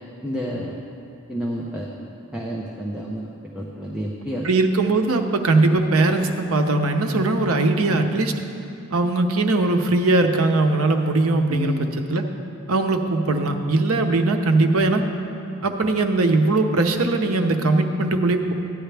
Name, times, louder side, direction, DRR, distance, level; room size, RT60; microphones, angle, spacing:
voice 1, 0.2-0.8 1.3-1.9 2.3-4.5 11.5-11.9, equal, 5° right, -4 dB, 0.7 m, -30 dB
voice 2, 4.4-8.3 8.9-12.2 12.7-15.0 15.6-18.5, right 2 dB, 80° right, 5 dB, 0.8 m, -20 dB
15.0 x 10.0 x 3.4 m, 3.0 s
head